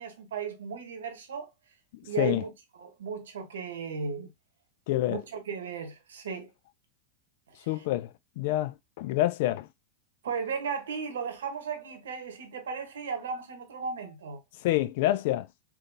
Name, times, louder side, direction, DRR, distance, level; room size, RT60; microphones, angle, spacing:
voice 1, 0.0-1.5 2.0-2.5 2.8-4.3 5.1-6.5 10.2-14.4, right 6 dB, 75° right, 0.9 m, -35 dB
voice 2, 1.9-2.4 4.9-5.2 7.7-9.7 14.6-15.5, left 15 dB, 60° left, 0.4 m, -27 dB
3.6 x 2.5 x 2.6 m
hypercardioid pair, 100°, 0 cm